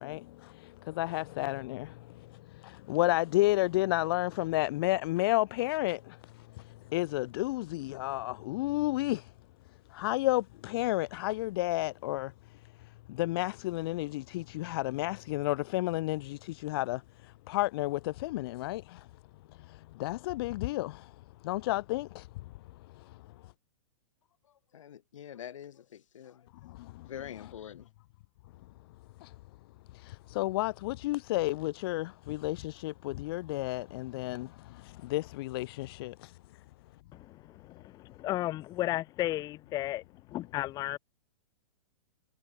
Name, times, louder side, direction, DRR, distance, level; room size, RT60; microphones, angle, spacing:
voice 1, 1.0-1.9 2.9-6.0 6.9-9.2 10.0-12.3 13.2-16.2 16.6-17.0 17.5-18.8 20.0-20.9 21.5-22.1 30.4-32.6 32.8-34.5 35.1-36.1, left 18 dB, 45° left, 1.5 m, -30 dB
voice 2, 24.7-26.5 27.1-27.9, left 9 dB, 70° left, 6.9 m, -45 dB
voice 3, 38.2-40.0 40.3-41.0, left 15 dB, 25° left, 0.8 m, -32 dB
hypercardioid pair, 145°, 17 cm